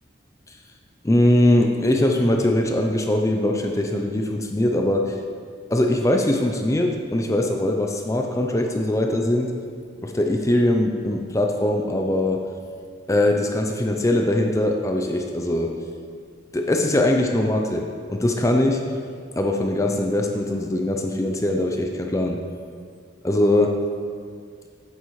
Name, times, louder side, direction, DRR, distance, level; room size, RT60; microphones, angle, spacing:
voice 1, 1.0-5.1 5.7-9.5 10.0-12.5 13.1-15.7 16.5-18.8 19.3-22.4 23.2-23.8, left 1 dB, 15° left, 3 dB, 0.5 m, -21 dB
9.3 x 8.3 x 3.2 m, 2.2 s
head